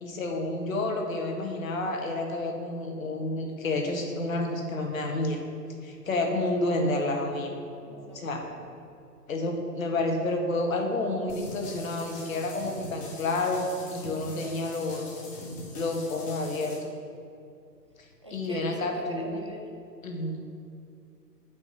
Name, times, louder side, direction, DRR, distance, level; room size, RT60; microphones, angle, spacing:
voice 1, 0.0-5.4 5.8-7.5 8.1-8.4 9.3-15.1 15.7-16.8 18.3-19.4 20.0-20.4, left 2 dB, 55° left, 2 dB, 1.5 m, -29 dB
voice 2, 7.8-8.6 18.2-19.8, right 1 dB, 20° right, 0 dB, 0.4 m, -44 dB
sound 1, 11.3-16.8, left 2 dB, 15° left, 1.1 m, -42 dB
8.4 x 5.3 x 4.9 m, 2.5 s
figure-of-eight pair, 120°, 49 cm